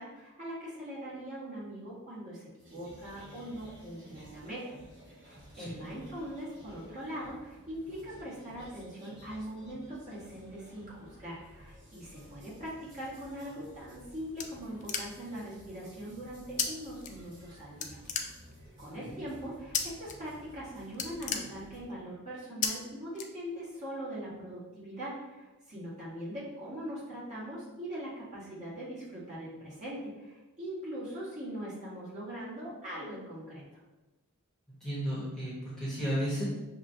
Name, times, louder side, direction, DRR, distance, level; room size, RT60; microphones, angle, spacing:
voice 1, 0.0-4.6 5.2-18.0 18.8-33.8, equal, 35° right, -8 dB, 1.3 m, -41 dB
sound 1, 2.6-21.8, equal, 55° right, 1.2 m, -54 dB
sound 2, 13.7-15.4 16.6-16.7 17.0-17.5 17.8-18.8 19.7-20.1 20.5-20.6 20.9-22.0 22.6-22.7 23.1-23.8, left 6 dB, 35° left, 0.3 m, -34 dB
voice 2, 34.7-36.4, equal, 5° left, -9 dB, 1.1 m, -34 dB
5.9 x 2.2 x 2.7 m, 1.1 s
head